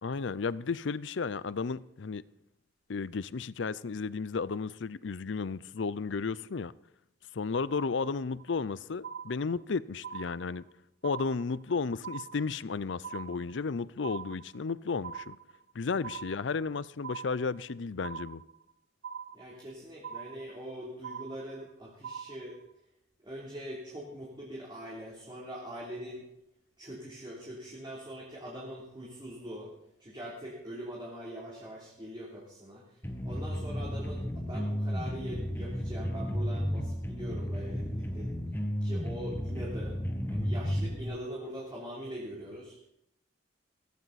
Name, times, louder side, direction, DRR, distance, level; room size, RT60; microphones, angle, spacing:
voice 1, 0.0-2.2 2.9-6.7 7.3-10.7 11.0-15.4 15.7-18.4, left 4 dB, 75° left, 0.6 m, -33 dB
sound 1, 8.4-8.7 9.0-9.7 10.0-10.7 11.0-11.7 12.0-12.7 13.0-13.7 14.0-14.7 15.0-15.7 16.0-16.7 17.0-17.7 18.0-18.7 19.0-19.7 20.0-20.7 21.0-21.7 22.0-22.7, right 7 dB, 65° right, 0.7 m, -43 dB
voice 2, 19.3-22.6 23.2-26.3 26.8-29.7 30.0-38.3 38.8-40.0 40.3-42.9, equal, 25° right, 3.3 m, -42 dB
sound 2, 33.0-41.0, equal, 10° left, 1.6 m, -33 dB
17.0 x 15.5 x 4.2 m
head